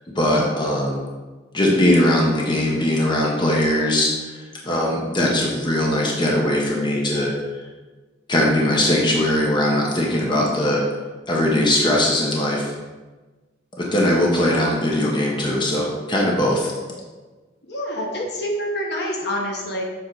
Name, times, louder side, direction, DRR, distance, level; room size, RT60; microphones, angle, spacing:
voice 1, 0.1-1.0 1.5-7.3 8.3-10.8 11.3-12.7 13.7-16.7, left 1 dB, 25° left, -2 dB, 0.9 m, -20 dB
voice 2, 17.6-19.8, equal, 65° left, 0 dB, 1.2 m, -27 dB
7.5 x 3.7 x 4.6 m, 1.3 s
head